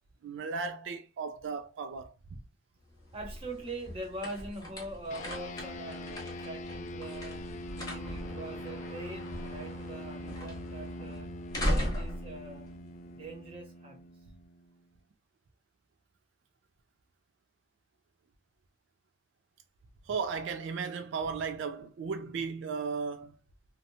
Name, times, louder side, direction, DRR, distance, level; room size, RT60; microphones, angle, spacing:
voice 1, 0.2-2.1 20.1-23.4, right 5 dB, 85° right, 0.3 m, -35 dB
sound 1, 2.8-13.6, equal, 20° left, 0.9 m, -38 dB
voice 2, 3.1-11.3 11.6-12.7 13.1-14.1, right 2 dB, 30° right, 0.9 m, -43 dB
sound 2, 5.1-14.8, left 1 dB, 40° left, 0.3 m, -43 dB
2.7 x 2.1 x 2.6 m
head